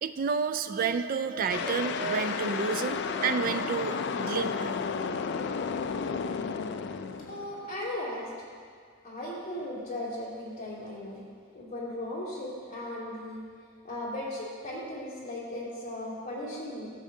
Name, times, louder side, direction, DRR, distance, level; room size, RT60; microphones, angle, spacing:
voice 1, 0.0-4.8, right 5 dB, 45° right, 11 dB, 0.3 m, -30 dB
sound 1, 1.5-7.8, left 5 dB, 55° left, 0.4 m, -32 dB
voice 2, 7.3-8.3 9.0-11.2 11.5-13.4 13.8-16.9, left 1 dB, 35° left, -8 dB, 2.5 m, -37 dB
13.5 x 7.4 x 2.7 m, 2.1 s
head